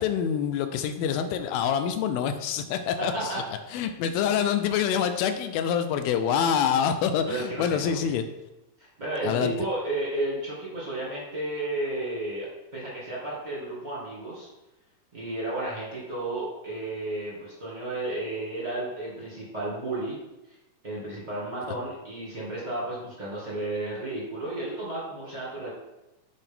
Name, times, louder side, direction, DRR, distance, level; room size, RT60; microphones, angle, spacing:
voice 1, 0.0-3.3 3.7-8.3 9.2-9.5 21.7-21.8, left 8 dB, 80° left, 8 dB, 2.3 m, -26 dB
voice 2, 3.0-3.4 7.2-8.1 8.8-14.5 15.1-20.2 20.8-25.7, right 2 dB, 25° right, -7 dB, 0.9 m, -33 dB
8.0 x 4.6 x 3.6 m, 0.97 s
omnidirectional pair, 4.3 m